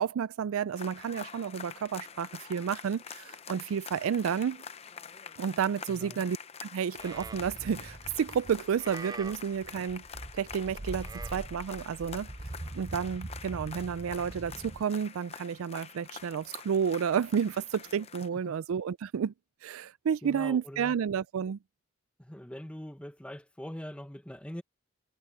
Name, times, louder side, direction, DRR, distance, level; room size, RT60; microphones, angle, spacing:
voice 1, 0.0-4.6 5.4-10.0 10.3-12.3 12.7-19.3 19.6-21.6, right 7 dB, 80° right, 0.4 m, -31 dB
sound 1, 0.8-18.3, left 6 dB, 30° left, 0.7 m, -46 dB
voice 2, 5.9-6.3 18.5-18.6 20.2-21.0 22.2-24.6, equal, 5° left, 1.0 m, -42 dB
Livestock farm animals working animals, 7.0-14.8, right 2 dB, 20° right, 0.5 m, -43 dB
head